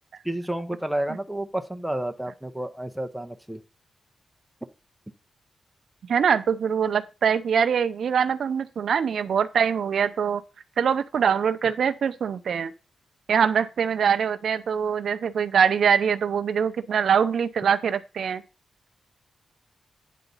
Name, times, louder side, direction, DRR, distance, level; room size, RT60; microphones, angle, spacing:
voice 1, 0.2-3.6, right 1 dB, ahead, 0.6 m, -30 dB
voice 2, 6.1-10.4 10.8-12.7 13.3-18.4, right 7 dB, 65° right, 0.5 m, -23 dB
9.2 x 3.9 x 5.4 m
wide cardioid pair, 170°, 0 cm